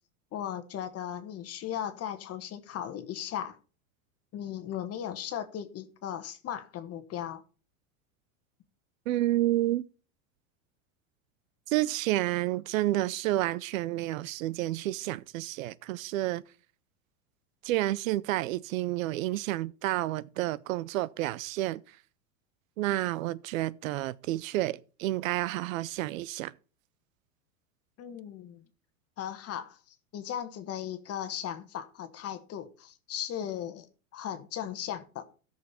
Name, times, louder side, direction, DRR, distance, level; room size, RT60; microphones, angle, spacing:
voice 1, 0.3-3.6 4.3-7.4 28.0-28.6 29.2-35.2, left 10 dB, 35° left, 1.2 m, -37 dB
voice 2, 9.1-9.8 11.7-16.4 17.6-21.8 22.8-26.5, right 16 dB, 75° right, 0.6 m, -30 dB
14.0 x 6.5 x 4.2 m
hypercardioid pair, 110°, 41 cm